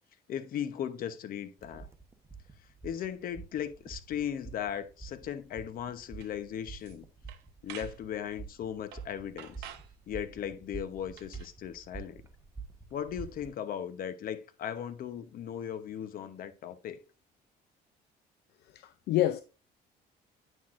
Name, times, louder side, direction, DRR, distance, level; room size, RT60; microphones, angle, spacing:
voice 1, 0.3-1.9 2.8-7.0 7.6-9.7 10.1-12.2 12.9-17.0, left 9 dB, 60° left, 0.9 m, -37 dB
sound 1, 1.6-13.5, right 5 dB, 15° right, 1.0 m, -48 dB
sound 2, 6.2-6.3 6.7-7.0 7.3-8.0 8.9-9.1 9.4-9.9 11.1-11.5, right 12 dB, 80° right, 0.9 m, -48 dB
voice 2, 18.8-19.4, left 14 dB, 75° left, 0.5 m, -27 dB
9.2 x 6.3 x 2.5 m
cardioid pair, 110°, 17 cm